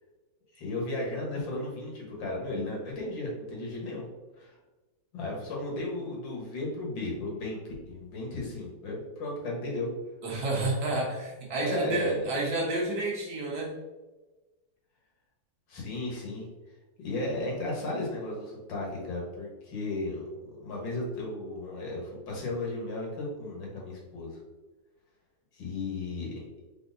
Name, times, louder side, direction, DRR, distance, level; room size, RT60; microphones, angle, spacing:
voice 1, 0.5-4.0 4.4-4.6 5.1-7.6 7.9-9.9 11.6-12.2 15.7-16.5 17.0-24.4 25.5-26.3, left 2 dB, 85° left, -3 dB, 2.0 m, -34 dB
voice 2, 10.2-13.7, right 2 dB, 65° right, -3 dB, 1.7 m, -30 dB
4.4 x 4.0 x 2.6 m, 1.2 s
omnidirectional pair, 2.0 m